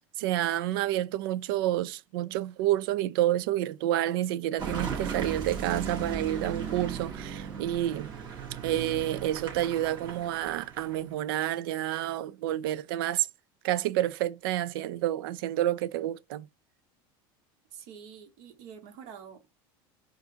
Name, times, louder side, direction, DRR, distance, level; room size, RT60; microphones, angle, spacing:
voice 1, 0.2-8.1 8.6-13.3 13.6-16.5, right 13 dB, 85° right, 0.4 m, -29 dB
Car passing by / Engine, 4.6-11.1, right 6 dB, 40° right, 1.9 m, -37 dB
voice 2, 17.7-19.5, right 7 dB, 65° right, 1.6 m, -47 dB
4.8 x 2.6 x 2.8 m
supercardioid pair, 125°, 12 cm